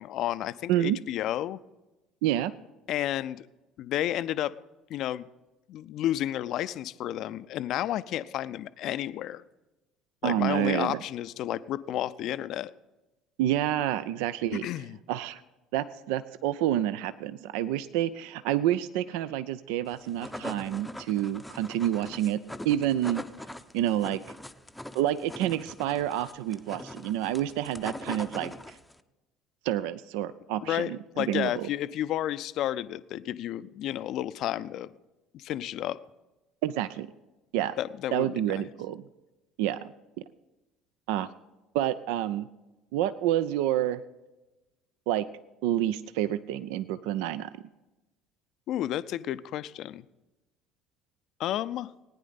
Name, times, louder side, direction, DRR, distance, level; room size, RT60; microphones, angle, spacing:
voice 1, 0.0-1.6 2.9-3.5 3.8-4.5 4.9-5.3 5.7-9.4 10.2-12.7 14.6-15.0 30.6-34.9 35.3-36.0 37.8-38.7 48.7-50.0 51.4-51.9, left 12 dB, 50° left, 15 dB, 0.4 m, -31 dB
voice 2, 0.7-1.0 2.2-2.5 10.2-11.0 13.4-14.7 15.1-15.4 15.7-22.4 22.6-23.2 23.7-24.2 24.9-28.7 29.6-31.7 36.6-37.1 37.5-37.7 38.1-39.0 39.6-39.8 41.1-41.3 41.7-42.5 42.9-44.0 45.1-45.3 45.6-47.5, right 12 dB, 60° right, 15 dB, 0.4 m, -28 dB
sound 1, 19.9-29.0, left 1 dB, 5° left, 0.6 m, -42 dB
18.5 x 9.9 x 4.0 m, 1.1 s
figure-of-eight pair, 60°, 0 cm